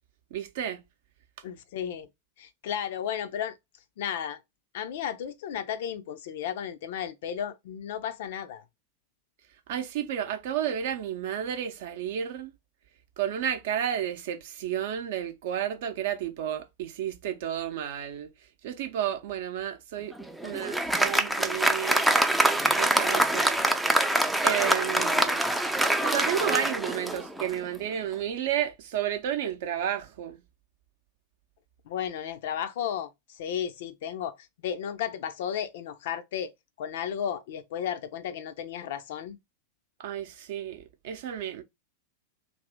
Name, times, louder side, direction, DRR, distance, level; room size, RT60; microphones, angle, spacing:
voice 1, 0.3-0.8 9.7-12.5 13.2-18.3 18.6-20.1 20.4-22.1 22.7-23.7 24.4-25.4 26.0-30.4 40.0-41.6, right 10 dB, 55° right, 0.6 m, -31 dB
voice 2, 1.4-2.1 2.4-3.5 4.0-4.4 4.7-8.6 31.9-34.4 34.6-36.5 36.8-39.4, left 9 dB, 55° left, 0.5 m, -33 dB
Applause, 20.1-27.7, right 1 dB, 5° right, 0.4 m, -25 dB
2.6 x 2.6 x 3.4 m
figure-of-eight pair, 90°, 0 cm